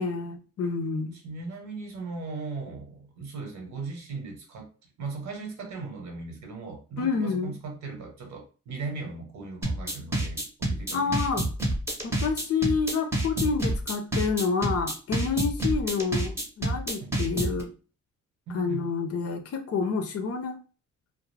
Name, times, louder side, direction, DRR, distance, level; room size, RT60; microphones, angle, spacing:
voice 1, 0.0-1.2 7.0-7.5 10.9-11.4 12.0-17.7 18.5-20.6, left 5 dB, 50° left, 0.6 m, -28 dB
voice 2, 1.1-4.7 5.0-11.5 17.0-17.2 18.5-18.9, right 4 dB, 70° right, 1.0 m, -38 dB
sound 1, 9.6-17.6, right 1 dB, 10° right, 0.8 m, -28 dB
2.3 x 2.1 x 3.2 m
cardioid pair, 90°, 30 cm